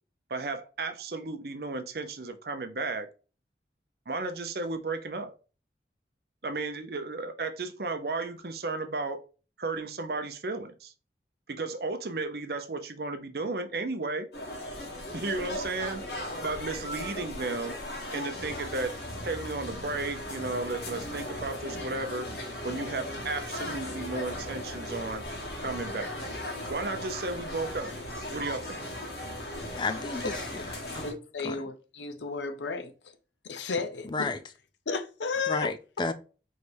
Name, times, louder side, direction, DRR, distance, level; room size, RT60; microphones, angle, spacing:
voice 1, 0.3-3.1 4.1-5.3 6.4-9.2 9.6-10.9 11.5-14.3 15.1-16.0 16.4-17.8 18.1-18.9 19.2-22.3 22.6-25.2 25.6-26.1 26.7-27.9 28.3-28.8, right 3 dB, 60° right, 0.6 m, -34 dB
sound 1, 14.3-31.1, left 1 dB, 65° left, 1.4 m, -37 dB
voice 2, 29.7-31.0 31.4-31.6 34.0-34.4 35.5-36.1, left 3 dB, 25° left, 0.4 m, -32 dB
voice 3, 31.0-32.9 33.4-34.3 34.9-35.7, left 4 dB, 90° left, 0.7 m, -33 dB
4.9 x 3.2 x 2.7 m
head